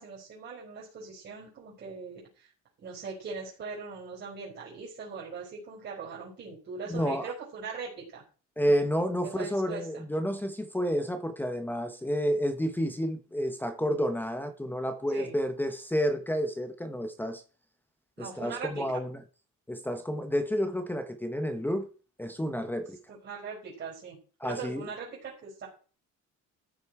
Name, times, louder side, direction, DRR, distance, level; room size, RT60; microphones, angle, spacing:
voice 1, 0.0-2.5 2.8-8.2 9.4-9.9 15.1-15.3 18.2-18.8 23.1-24.2 24.4-25.7, right 5 dB, 35° right, 4.8 m, -40 dB
voice 2, 6.9-7.3 8.6-17.4 18.2-19.2 19.7-21.9 22.2-23.0 24.4-24.9, equal, 5° left, 0.9 m, -30 dB
13.5 x 6.7 x 4.7 m
cardioid pair, 175°, 31 cm